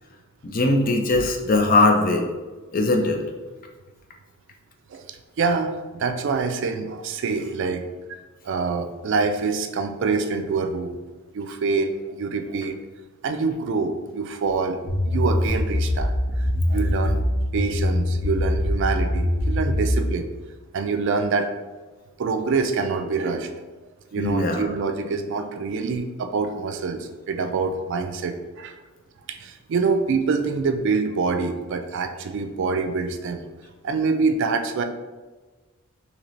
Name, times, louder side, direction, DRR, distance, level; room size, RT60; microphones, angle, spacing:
voice 1, 0.4-2.2 2.7-3.2 24.2-24.7, left 2 dB, 40° left, 2 dB, 0.5 m, -20 dB
voice 2, 4.9-7.9 8.4-11.0 11.3-12.8 13.2-16.1 16.7-17.2 17.5-20.3 20.7-21.5 22.2-23.5 24.1-28.8 29.3-33.4 33.8-34.8, right 4 dB, 60° right, 6 dB, 0.4 m, -25 dB
sound 1, 14.9-20.1, left 1 dB, 90° left, 0.9 m, -23 dB
4.0 x 2.9 x 3.1 m, 1.3 s
head